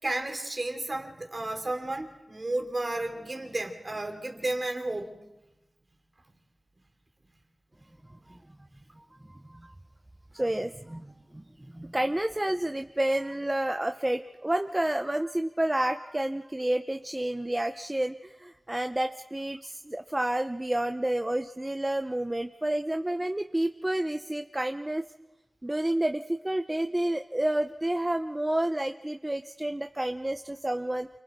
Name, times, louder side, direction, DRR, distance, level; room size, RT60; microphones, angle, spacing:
voice 1, 0.0-5.1, right 2 dB, 40° right, 4 dB, 3.1 m, -32 dB
voice 2, 9.3-9.7 10.3-11.4 11.7-25.0 25.6-31.1, right 1 dB, 20° right, 7 dB, 0.7 m, -30 dB
29.5 x 24.0 x 4.6 m, 0.98 s
wide cardioid pair, 80°, 0 cm